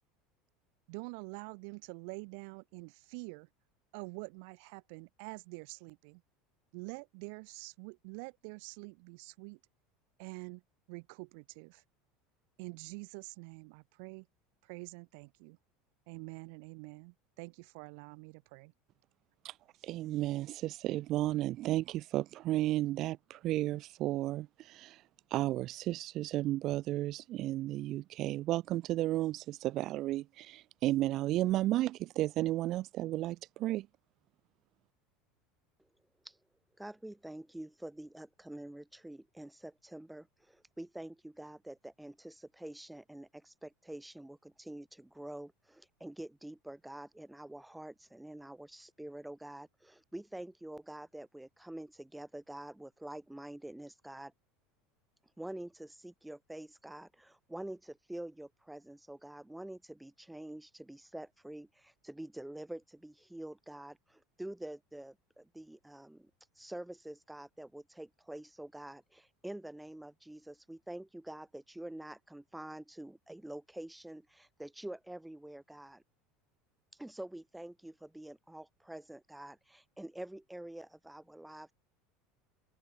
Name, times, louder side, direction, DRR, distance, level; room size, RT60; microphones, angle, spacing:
voice 1, 0.9-3.5 3.9-6.2 6.7-9.6 10.2-10.6 10.9-11.8 12.6-14.3 14.6-15.6 16.1-18.7, right 36 dB, 70° right, 1.9 m, -46 dB
voice 2, 19.4-25.0 25.3-33.9, right 15 dB, 50° right, 0.4 m, -33 dB
voice 3, 36.8-54.3 55.4-66.3 66.5-76.0 76.9-81.7, right 1 dB, 5° right, 6.9 m, -47 dB
open air
supercardioid pair, 120°, 0 cm